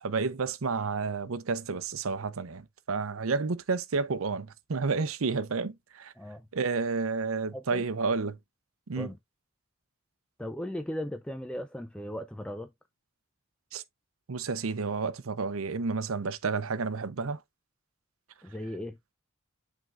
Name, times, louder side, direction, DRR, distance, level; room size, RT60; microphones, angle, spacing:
voice 1, 0.0-6.1 6.5-8.4 8.9-9.1 13.7-13.8 14.3-17.4, right 4 dB, 85° right, 0.7 m, -31 dB
voice 2, 6.2-6.5 7.5-7.9 9.0-9.2 10.4-12.7 18.4-19.0, left 1 dB, 5° left, 0.4 m, -37 dB
11.0 x 3.8 x 2.4 m
head